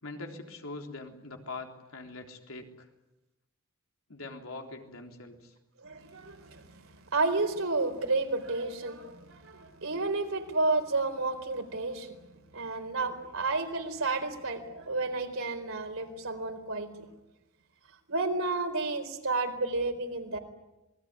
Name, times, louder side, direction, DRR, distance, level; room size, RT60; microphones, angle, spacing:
voice 1, 0.0-2.9 4.1-5.5, left 3 dB, 75° left, 3 dB, 3.7 m, -43 dB
voice 2, 5.8-12.2 12.5-17.1 18.1-20.4, right 3 dB, 75° right, 5 dB, 4.2 m, -31 dB
27.0 x 21.0 x 9.8 m, 1.0 s
head